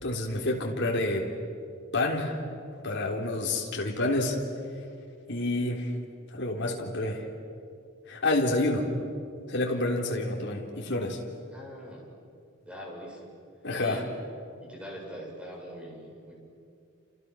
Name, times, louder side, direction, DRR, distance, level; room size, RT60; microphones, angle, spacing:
voice 1, 0.0-1.3 1.9-2.4 2.8-4.4 5.3-5.9 6.3-7.2 8.1-8.9 9.5-11.2 13.6-14.0, left 2 dB, 55° left, 0 dB, 3.6 m, -28 dB
voice 2, 11.5-12.1 12.6-13.4 13.7-14.0 14.6-16.4, equal, 5° right, -3 dB, 7.4 m, -42 dB
29.5 x 29.0 x 6.3 m, 2.4 s
head